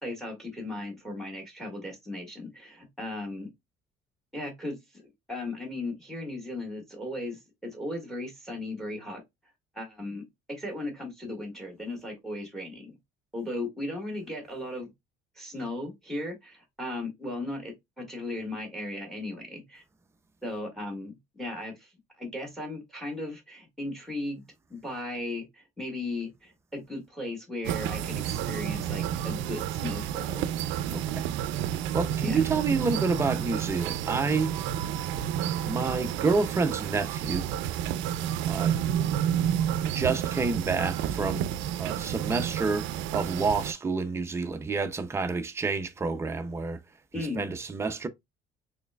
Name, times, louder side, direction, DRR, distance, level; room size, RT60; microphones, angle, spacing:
voice 1, 0.0-3.5 4.3-5.0 5.3-7.4 7.7-9.2 9.7-12.9 13.3-14.9 15.4-19.8 20.4-21.9 22.2-24.4 24.7-30.5 32.2-32.4 47.1-47.5, left 2 dB, ahead, 1.6 m, -36 dB
sound 1, 27.6-43.7, right 10 dB, 75° right, 0.4 m, -30 dB
voice 2, 30.9-31.3 31.9-34.5 35.6-37.5 38.5-38.9 39.9-41.4 41.8-46.8 47.2-48.1, right 4 dB, 15° right, 0.4 m, -29 dB
4.3 x 3.2 x 2.2 m
cardioid pair, 175°, 20 cm